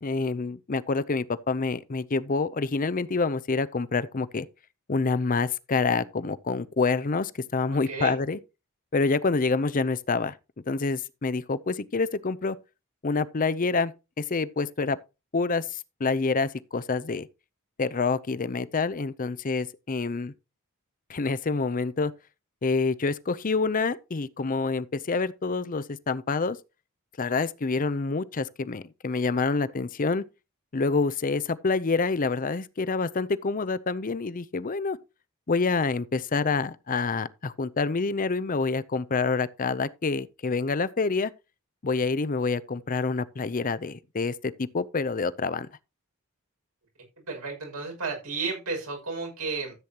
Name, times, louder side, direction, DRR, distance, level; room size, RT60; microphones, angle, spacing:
voice 1, 0.0-4.5 4.9-8.4 8.9-10.4 10.7-12.6 13.0-13.9 14.2-15.0 15.3-17.3 17.8-20.3 21.1-22.1 22.6-26.6 27.2-30.2 30.7-35.0 35.5-41.3 41.8-45.7, left 4 dB, 40° left, 0.6 m, -27 dB
voice 2, 7.7-8.2 47.3-49.7, right 4 dB, 85° right, 6.2 m, -32 dB
14.0 x 8.2 x 2.9 m
head